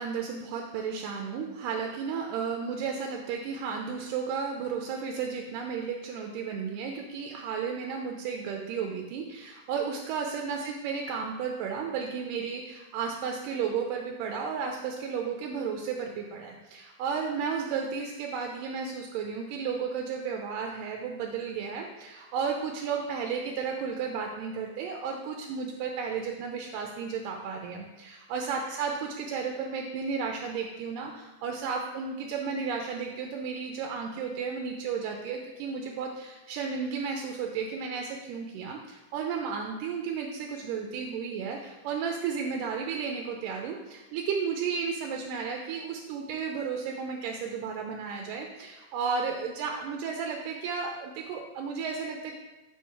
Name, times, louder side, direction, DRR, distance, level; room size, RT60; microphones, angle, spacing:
voice 1, 0.0-52.3, right 6 dB, 85° right, 2 dB, 2.2 m, -33 dB
4.6 x 4.4 x 5.5 m, 1.1 s
omnidirectional pair, 3.8 m